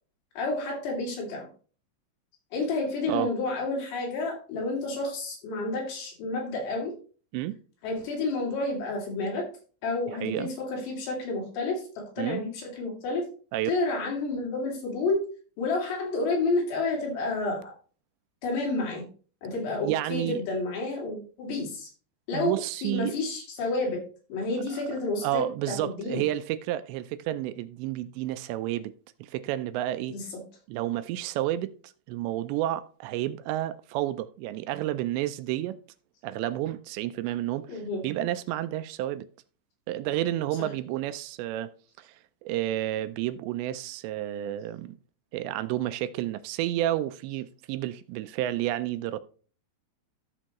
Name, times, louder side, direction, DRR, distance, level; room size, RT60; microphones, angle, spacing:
voice 1, 0.4-1.5 2.5-6.9 7.8-9.5 9.8-13.2 13.7-15.2 15.6-17.7 18.4-19.0 19.4-21.9 22.3-22.6 22.8-24.0 24.3-26.2 30.1-30.4 37.7-38.0, left 2 dB, 70° left, 4.8 m, -30 dB
voice 2, 19.8-20.4 22.3-23.2 24.7-24.8 25.2-28.9 29.2-30.2 30.7-31.7 32.1-35.8 36.2-37.7 38.0-39.3 39.9-41.7 42.0-42.1 42.4-45.0 45.3-49.2, right 14 dB, 85° right, 2.8 m, -30 dB
14.0 x 6.5 x 3.0 m
omnidirectional pair, 5.1 m